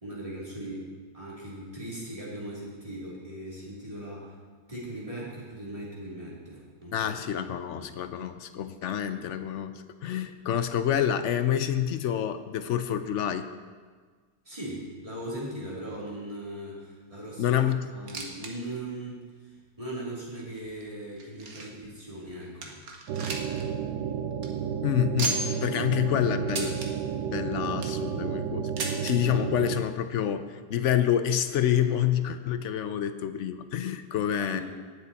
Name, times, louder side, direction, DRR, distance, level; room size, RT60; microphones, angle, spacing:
voice 1, 0.0-4.3 4.7-7.1 7.3-7.4 7.7-7.8 14.4-17.6 17.9-22.7 34.4-34.6, right 1 dB, 20° right, -6 dB, 3.0 m, -39 dB
voice 2, 6.9-13.5 17.4-17.9 24.8-26.8 27.2-34.6, left 10 dB, 65° left, 10 dB, 0.8 m, -28 dB
sound 1, 17.9-18.5 18.8-18.9 19.6-19.7 20.4-21.9 22.3-22.4 22.6-23.6 23.9-24.0 24.3-24.5 25.2-25.7 26.5-26.9 27.5-28.0 28.8-29.2 30.1-30.2 30.4-30.5 31.3-31.4, right 3 dB, 65° right, 1.7 m, -34 dB
sound 2, 23.1-29.8, right 7 dB, 80° right, 1.2 m, -32 dB
18.0 x 6.8 x 4.1 m, 1.5 s
omnidirectional pair, 1.7 m